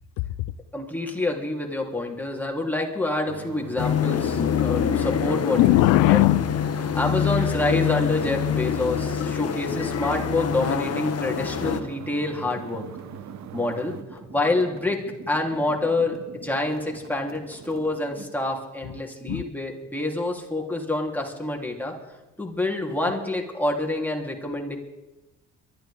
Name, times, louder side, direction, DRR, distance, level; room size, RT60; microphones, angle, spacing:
voice 1, 0.7-5.7 6.1-6.2 6.9-12.8 13.5-15.0 15.3-21.9 22.4-24.8, left 2 dB, 5° left, 3.5 m, -27 dB
sound 1, 3.3-14.0, right 11 dB, 55° right, 1.1 m, -42 dB
sound 2, 3.8-11.8, left 8 dB, 45° left, 1.3 m, -25 dB
voice 2, 5.6-6.9 18.8-18.9 19.3-19.4, left 19 dB, 70° left, 0.6 m, -20 dB
sound 3, 9.6-18.5, right 4 dB, 40° right, 2.6 m, -45 dB
23.0 x 13.0 x 3.7 m
hypercardioid pair, 55°, 33 cm